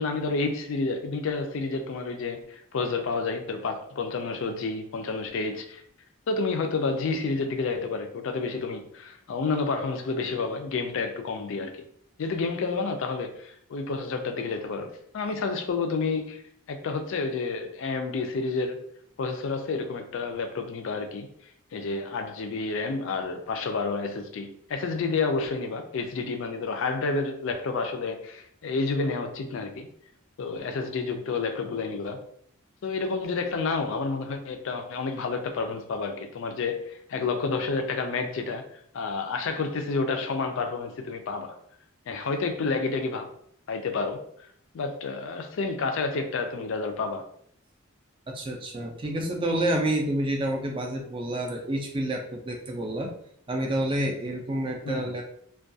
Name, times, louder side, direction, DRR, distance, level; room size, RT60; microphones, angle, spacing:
voice 1, 0.0-5.8 6.3-11.8 12.2-18.8 19.2-21.3 21.7-29.9 30.4-32.2 32.8-38.6 38.9-41.6 42.1-43.3 43.7-44.3 44.7-47.3 54.8-55.1, left 4 dB, 60° left, 0.4 m, -30 dB
voice 2, 48.3-53.1 53.5-55.2, right 1 dB, 25° right, 0.4 m, -29 dB
2.3 x 2.2 x 2.6 m
head